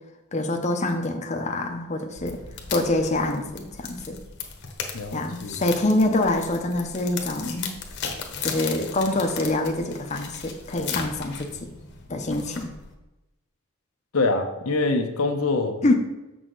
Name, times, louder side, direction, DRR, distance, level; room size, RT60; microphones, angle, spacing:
voice 1, 0.3-2.4 2.7-4.2 5.1-7.7 8.4-11.5 12.1-12.7 15.8-15.9, left 2 dB, 35° left, 3 dB, 0.8 m, -25 dB
sound 1, 2.2-12.9, left 6 dB, 55° left, 1.1 m, -37 dB
voice 2, 4.9-5.6 14.1-15.9, left 3 dB, 75° left, 5 dB, 0.8 m, -25 dB
7.0 x 6.3 x 3.9 m, 1.0 s
head